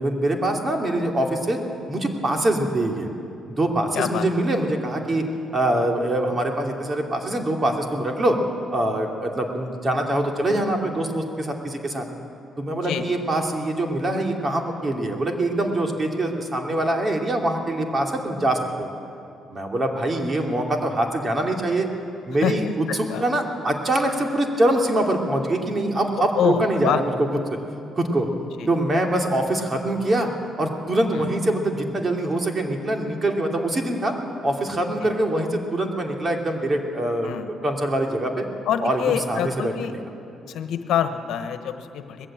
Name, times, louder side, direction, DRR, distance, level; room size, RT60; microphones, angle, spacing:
voice 1, 0.0-1.6 1.9-3.1 3.5-5.3 5.5-8.4 8.7-12.0 12.6-18.9 19.5-21.9 22.3-27.3 27.9-28.3 28.7-30.3 30.6-34.1 34.4-37.4 37.6-38.5 38.8-39.7, right 1 dB, 35° right, 2 dB, 2.8 m, -24 dB
voice 2, 3.9-4.3 12.7-13.0 22.4-22.7 23.1-23.2 26.2-27.0 28.6-28.7 31.1-31.3 35.0-35.1 37.2-37.5 38.6-39.9 40.5-42.3, left 9 dB, 80° left, 8 dB, 1.2 m, -26 dB
20.0 x 15.0 x 8.9 m, 2.7 s
cardioid pair, 90°, 0 cm